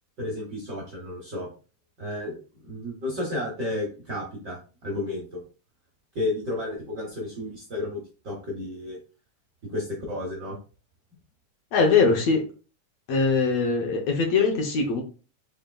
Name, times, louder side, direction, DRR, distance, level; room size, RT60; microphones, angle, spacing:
voice 1, 0.2-1.5 2.0-5.4 6.1-9.0 9.6-10.6, left 2 dB, 90° right, -2 dB, 0.9 m, -32 dB
voice 2, 11.7-12.4 13.1-15.0, left 4 dB, 70° left, 2 dB, 1.7 m, -22 dB
5.1 x 3.3 x 2.3 m, 0.35 s
omnidirectional pair, 3.4 m